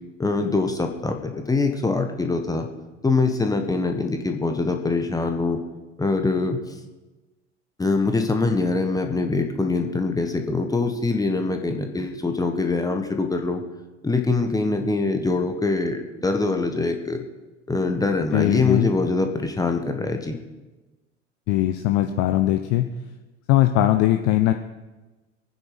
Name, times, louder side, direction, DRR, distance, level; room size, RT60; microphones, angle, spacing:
voice 1, 0.2-2.7 3.0-5.6 6.0-6.6 7.8-13.6 14.0-17.2 17.7-20.4, left 3 dB, 10° left, 5 dB, 1.4 m, -23 dB
voice 2, 18.3-18.9 21.5-22.9 23.5-24.5, left 14 dB, 40° left, 7 dB, 0.8 m, -20 dB
23.5 x 9.6 x 5.1 m, 1.2 s
figure-of-eight pair, 75°, 36 cm